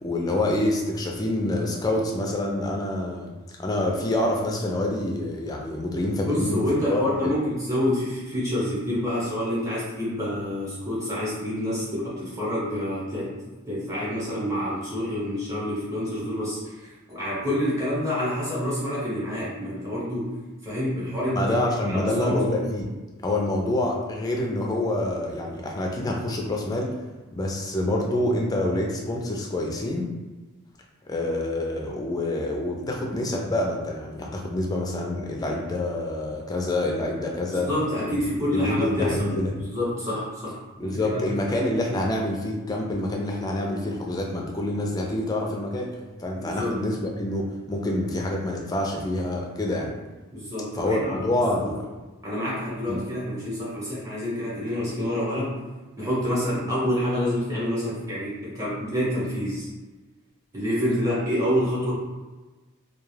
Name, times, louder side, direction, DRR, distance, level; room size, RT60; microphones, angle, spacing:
voice 1, 0.0-3.3 3.6-7.3 21.3-22.9 23.2-26.9 27.3-30.1 31.1-37.7 38.1-38.2 38.5-39.6 40.8-45.9 46.2-49.9 50.7-51.9 52.9-53.0, left 1 dB, 20° left, 0 dB, 0.4 m, -27 dB
voice 2, 6.2-13.4 13.7-20.3 20.6-22.4 37.5-41.2 41.5-41.7 46.4-46.8 50.3-51.7 52.2-55.6 56.0-59.7 60.5-61.9, left 1 dB, 15° right, -8 dB, 1.0 m, -28 dB
2.3 x 2.3 x 3.1 m, 1.2 s
head